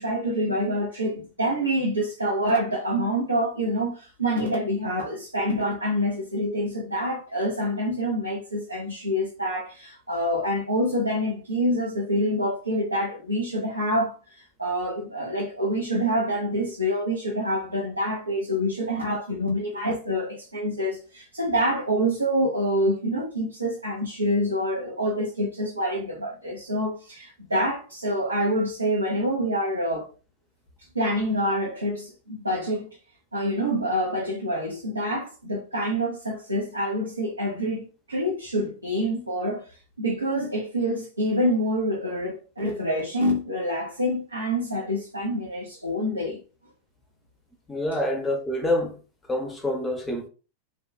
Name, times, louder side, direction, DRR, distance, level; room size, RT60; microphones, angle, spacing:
voice 1, 0.0-30.1 30.9-32.9 33.3-39.7 40.0-46.4, equal, 85° right, 0.6 m, -26 dB
voice 2, 47.7-49.0 49.3-50.3, left 1 dB, 10° left, 0.6 m, -26 dB
2.6 x 2.2 x 2.2 m
figure-of-eight pair, 90°, 0 cm